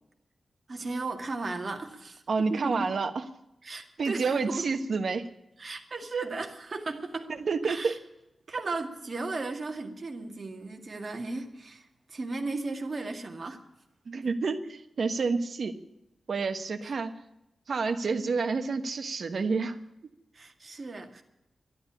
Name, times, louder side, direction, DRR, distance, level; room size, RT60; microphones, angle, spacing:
voice 1, 0.7-2.9 3.6-4.6 5.6-7.3 7.6-8.0 8.5-13.6 16.8-16.9 20.3-21.2, right 3 dB, 40° right, 2.1 m, -36 dB
voice 2, 2.3-3.2 4.0-5.3 7.3-8.0 14.1-15.8 16.3-17.2 17.7-19.8, right 4 dB, 60° right, 1.3 m, -29 dB
12.0 x 11.5 x 9.9 m
wide cardioid pair, 140°, 0 cm